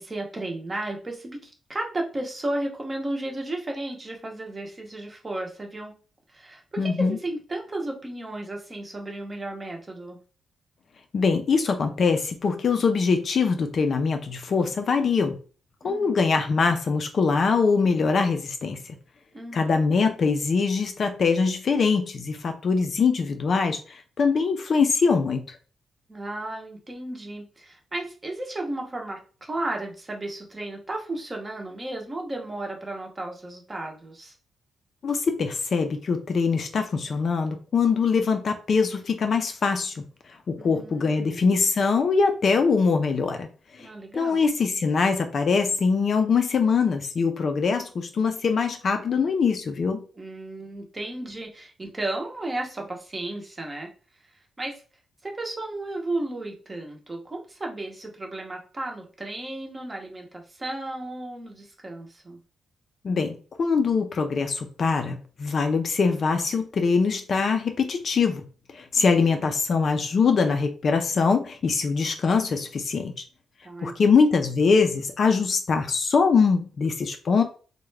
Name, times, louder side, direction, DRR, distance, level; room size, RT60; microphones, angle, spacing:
voice 1, 0.0-6.0 6.3-10.2 15.8-16.3 19.3-19.8 26.1-34.3 40.6-41.5 43.8-44.5 50.1-53.9 54.6-54.8 55.2-62.4 68.9-69.5 73.6-74.1, right 2 dB, 20° right, 0.7 m, -34 dB
voice 2, 6.8-7.2 11.1-15.4 15.8-18.8 19.5-25.6 35.0-40.0 40.5-43.5 43.8-43.9 44.1-50.0 63.0-68.4 68.7-73.1 73.8-77.4, left 5 dB, 40° left, 0.4 m, -23 dB
3.5 x 2.1 x 3.2 m
wide cardioid pair, 170°, 0 cm